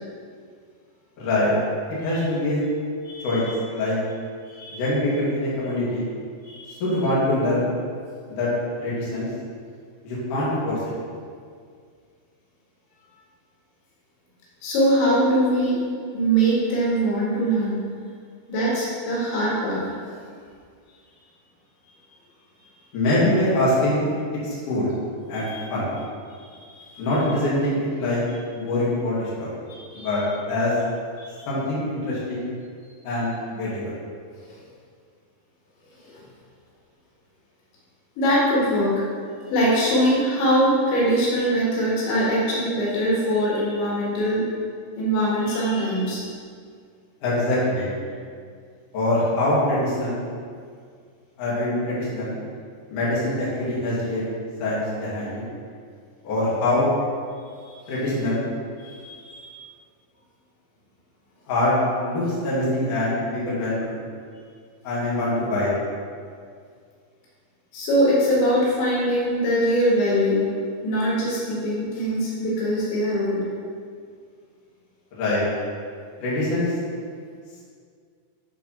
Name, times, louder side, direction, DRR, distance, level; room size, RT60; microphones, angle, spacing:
voice 1, 1.2-1.5 2.0-2.6 3.2-4.0 4.7-6.1 6.8-7.7 8.3-8.5 8.8-9.3 10.0-10.8 22.9-24.0 24.4-24.9 25.3-25.9 27.0-28.2 28.6-29.5 29.9-30.2 30.5-30.8 31.5-32.5 33.0-33.9 47.2-47.9 48.9-50.2 51.4-52.4 52.9-54.3 54.6-55.4 56.2-56.9 57.9-58.4 61.5-61.7 62.0-64.0 64.8-65.7 75.2-75.4 76.2-76.7, left 1 dB, 50° left, -9 dB, 3.5 m, -24 dB
voice 2, 3.1-3.4 4.5-4.8 6.4-6.8 14.6-15.8 16.1-17.8 18.5-19.8 25.4-25.6 26.4-27.0 29.7-30.1 31.2-31.5 34.4-34.6 36.0-36.2 38.2-38.9 39.5-44.4 45.0-46.2 57.7-57.9 58.8-59.5 67.7-70.4 70.8-73.4, equal, 80° left, -7 dB, 4.2 m, -22 dB
10.5 x 4.1 x 5.8 m, 2.1 s
omnidirectional pair, 5.2 m